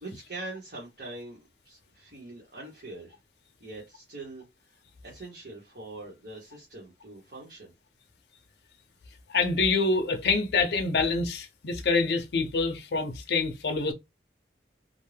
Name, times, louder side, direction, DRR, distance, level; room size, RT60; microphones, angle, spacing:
voice 1, 0.0-3.2 3.6-4.4 5.0-7.7, right 2 dB, 60° right, 1.0 m, -43 dB
voice 2, 9.3-13.9, left 4 dB, 70° left, 0.5 m, -26 dB
2.5 x 2.2 x 3.2 m
head